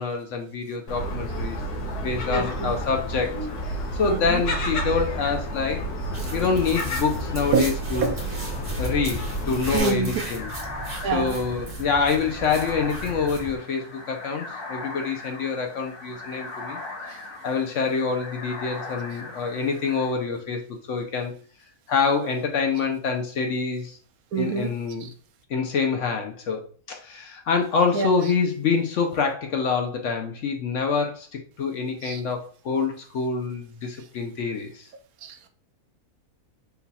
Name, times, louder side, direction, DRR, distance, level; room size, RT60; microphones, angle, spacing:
voice 1, 0.0-1.6 2.0-3.5 3.9-5.8 6.3-8.1 8.8-10.5 11.1-16.8 17.4-21.3 21.9-24.0 24.4-25.1 25.5-34.9, left 5 dB, 65° left, 0.9 m, -26 dB
Gull seagull, 0.9-9.8, equal, 85° left, 1.4 m, -30 dB
voice 2, 2.3-2.8 4.0-4.4 7.5-7.6 8.0-8.1 9.7-10.2 11.0-11.4 24.3-24.7 25.0-25.1 27.9-28.1 32.0-32.2 35.2-35.5, right 5 dB, 75° right, 1.1 m, -26 dB
sound 1, 6.1-13.6, right 1 dB, 35° right, 0.7 m, -36 dB
sound 2, 9.8-20.1, left 2 dB, 50° left, 1.2 m, -39 dB
3.9 x 2.3 x 4.1 m
omnidirectional pair, 1.6 m